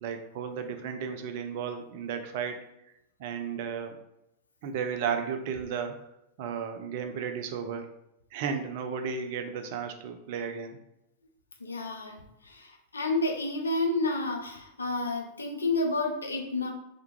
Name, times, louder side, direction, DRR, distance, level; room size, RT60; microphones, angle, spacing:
voice 1, 0.0-2.6 3.2-4.0 4.6-6.0 6.4-7.9 8.3-10.8, right 6 dB, 50° right, 6 dB, 0.3 m, -34 dB
voice 2, 11.6-16.7, left 2 dB, 75° left, 2 dB, 0.4 m, -30 dB
2.3 x 2.1 x 3.0 m, 0.85 s
figure-of-eight pair, 90°, 0 cm